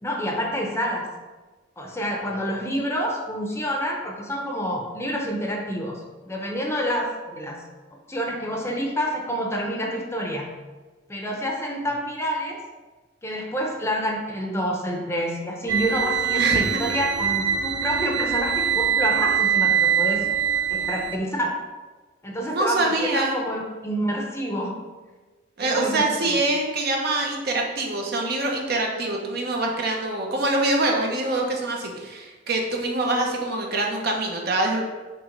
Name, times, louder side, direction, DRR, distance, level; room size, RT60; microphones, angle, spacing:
voice 1, 0.0-1.1 1.8-7.6 8.1-10.6 11.1-12.6 13.2-20.2 20.7-21.6 22.2-24.7 25.6-26.4, equal, 15° left, 1 dB, 0.7 m, -28 dB
sound 1, 15.7-21.2, right 8 dB, 90° right, 0.4 m, -23 dB
voice 2, 16.4-16.8 22.4-23.4 25.6-34.8, right 2 dB, 60° right, 0 dB, 0.9 m, -25 dB
5.9 x 3.1 x 5.2 m, 1.3 s
head